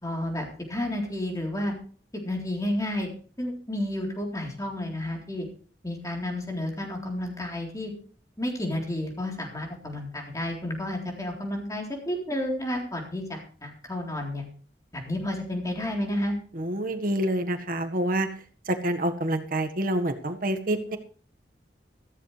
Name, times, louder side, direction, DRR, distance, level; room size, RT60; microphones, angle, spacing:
voice 1, 0.0-1.7 2.2-3.1 3.4-5.5 5.8-7.9 8.4-14.4 14.9-16.4, left 1 dB, 20° left, 0 dB, 3.7 m, -31 dB
voice 2, 16.5-18.3 18.7-21.0, right 1 dB, 50° right, 6 dB, 1.6 m, -27 dB
14.5 x 14.0 x 3.3 m, 0.44 s
head